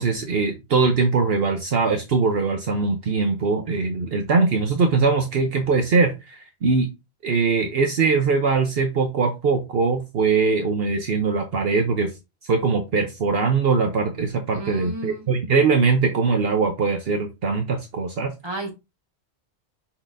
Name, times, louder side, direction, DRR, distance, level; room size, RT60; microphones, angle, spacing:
voice 1, 0.0-6.9 7.2-12.1 12.4-18.3, right 4 dB, 65° right, 1.0 m, -21 dB
voice 2, 14.5-15.3 18.4-18.7, right 1 dB, 25° right, 2.0 m, -32 dB
6.2 x 5.8 x 2.6 m
omnidirectional pair, 1.1 m